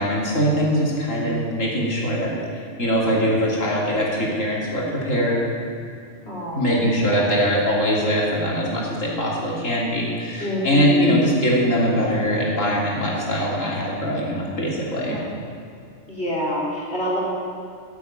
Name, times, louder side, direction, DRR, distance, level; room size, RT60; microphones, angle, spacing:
voice 1, 0.0-2.3 2.8-5.4 6.5-15.2, equal, 80° left, -4 dB, 3.5 m, -22 dB
voice 2, 6.2-7.4 10.4-11.1 15.1-15.3 16.1-17.2, equal, 55° left, -6 dB, 4.1 m, -28 dB
13.0 x 8.7 x 9.0 m, 2.4 s
omnidirectional pair, 1.3 m